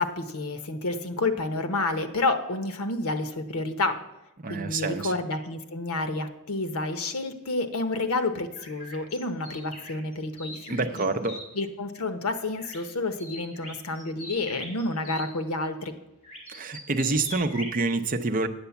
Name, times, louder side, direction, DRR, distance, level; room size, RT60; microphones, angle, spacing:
voice 1, 0.0-4.0 4.4-11.1 11.5-16.0, left 2 dB, 85° left, 9 dB, 1.0 m, -29 dB
voice 2, 4.4-5.1 10.7-11.4 16.5-18.5, right 3 dB, 40° right, 8 dB, 0.7 m, -27 dB
sound 1, 8.5-11.4 12.6-12.9 13.2-15.3 16.2-17.8, left 1 dB, 30° left, 3.3 m, -42 dB
8.9 x 8.0 x 7.0 m, 0.92 s
head